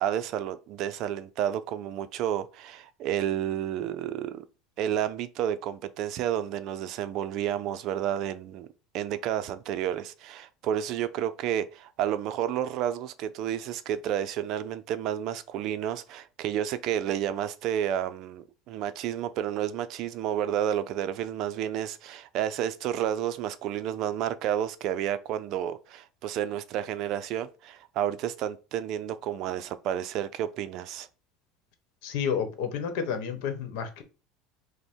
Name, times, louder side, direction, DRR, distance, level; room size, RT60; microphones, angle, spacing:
voice 1, 0.0-4.4 4.8-8.7 8.9-31.1, right 10 dB, 50° right, 0.4 m, -31 dB
voice 2, 32.0-34.0, left 7 dB, 70° left, 1.0 m, -30 dB
5.3 x 2.1 x 4.5 m
cardioid pair, 150°, 0 cm